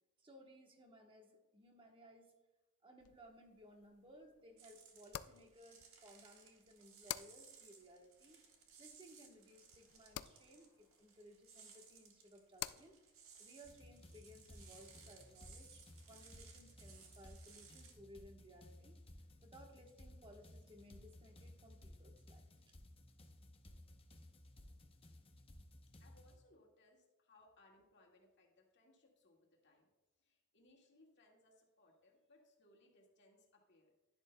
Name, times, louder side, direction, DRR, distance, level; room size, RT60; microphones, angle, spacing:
voice 1, 0.2-2.3 2.8-8.4 8.8-13.0 13.4-19.0 19.4-22.7, equal, 25° right, 3 dB, 1.2 m, -61 dB
sound 1, 3.0-15.8, left 12 dB, 85° left, 0.3 m, -54 dB
sound 2, 4.6-17.9, right 6 dB, 65° right, 1.5 m, -62 dB
sound 3, 13.6-26.4, left 1 dB, 25° left, 0.7 m, -59 dB
voice 2, 26.0-29.9 30.2-33.9, left 2 dB, 55° left, -1 dB, 1.9 m, -69 dB
10.5 x 10.5 x 2.2 m, 1.0 s
head